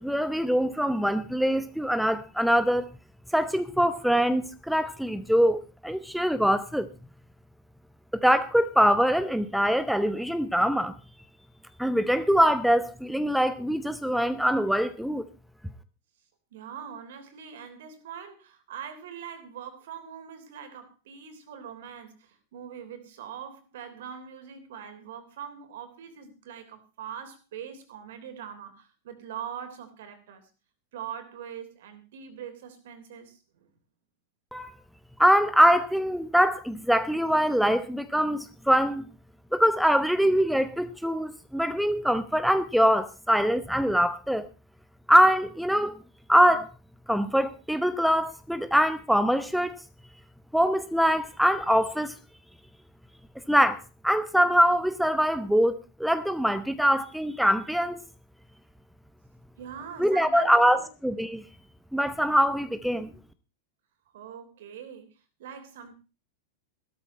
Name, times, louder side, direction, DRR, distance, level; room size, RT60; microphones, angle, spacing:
voice 1, 0.0-2.9 3.3-6.9 8.2-10.9 11.8-15.2 34.5-34.8 35.2-39.0 39.5-44.5 45.1-46.0 46.3-46.7 47.1-49.8 50.5-52.1 53.5-58.0 60.0-61.4 61.9-63.1, equal, ahead, 0.9 m, -23 dB
voice 2, 16.5-30.5 30.9-33.7 59.6-60.9 64.1-65.9, right 8 dB, 55° right, 3.2 m, -42 dB
16.0 x 13.0 x 4.3 m
figure-of-eight pair, 90°, 0 cm